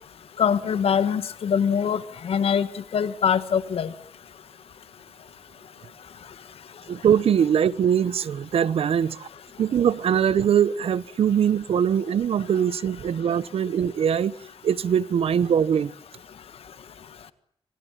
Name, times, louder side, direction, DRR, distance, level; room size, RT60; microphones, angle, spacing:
voice 1, 0.4-2.7 2.9-3.9, left 7 dB, 85° left, 14 dB, 1.6 m, -23 dB
voice 2, 6.9-9.3 9.6-14.3 14.6-15.9, right 8 dB, 85° right, 19 dB, 1.1 m, -22 dB
26.5 x 25.5 x 7.5 m, 0.65 s
wide cardioid pair, 110°, 10 cm